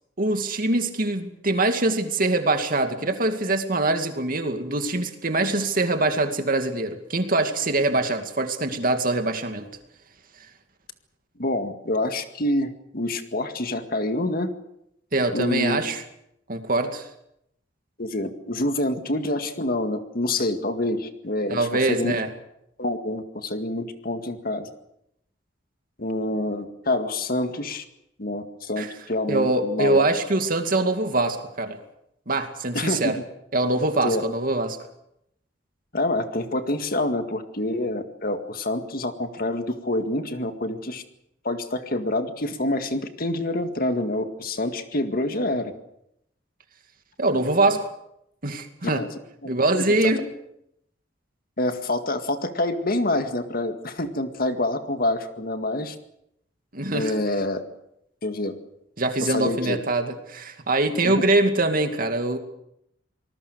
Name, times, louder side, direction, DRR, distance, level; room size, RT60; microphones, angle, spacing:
voice 1, 0.2-9.7 15.1-16.0 16.5-17.1 21.5-22.3 28.8-28.9 29.3-31.8 32.3-33.2 33.5-34.8 47.2-47.9 48.4-49.0 49.4-50.2 56.7-57.1 59.0-62.4, right 2 dB, 50° right, 6 dB, 2.4 m, -23 dB
voice 2, 11.4-14.5 15.3-15.9 18.0-22.2 22.8-24.7 26.0-27.8 28.2-30.1 32.7-33.2 34.0-34.2 35.9-41.0 41.4-45.7 48.8-49.1 49.4-50.3 51.6-56.0 56.9-57.6 58.2-58.5 59.2-59.8 61.0-61.1, left 1 dB, 55° left, 7 dB, 2.0 m, -27 dB
26.5 x 19.5 x 6.6 m, 0.77 s
head